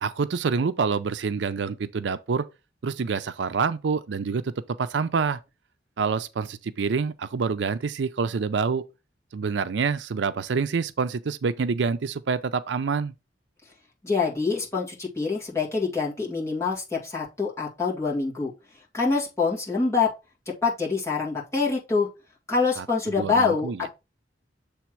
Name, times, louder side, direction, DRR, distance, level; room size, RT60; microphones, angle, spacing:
voice 1, 0.0-2.5 2.8-4.5 4.8-5.4 6.0-8.8 9.3-13.1 22.8-23.8, right 5 dB, 80° right, 0.5 m, -27 dB
voice 2, 14.0-18.5 18.9-20.1 20.6-22.1 22.5-23.9, left 4 dB, 15° left, 2.2 m, -25 dB
7.2 x 3.4 x 4.5 m
head